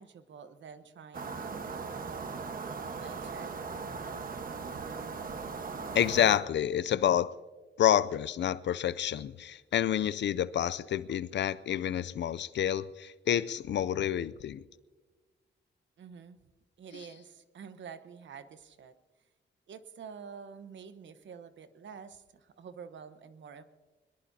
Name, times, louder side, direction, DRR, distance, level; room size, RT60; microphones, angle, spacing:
voice 1, 0.0-2.4 2.9-3.8 16.0-16.4 16.8-18.9 19.7-23.6, right 6 dB, 80° right, 1.0 m, -48 dB
sound 1, 1.1-6.4, right 4 dB, 50° right, 1.2 m, -39 dB
voice 2, 5.9-7.3 7.8-14.6, left 10 dB, 70° left, 0.4 m, -28 dB
23.0 x 21.5 x 2.8 m
wide cardioid pair, 130°, 19 cm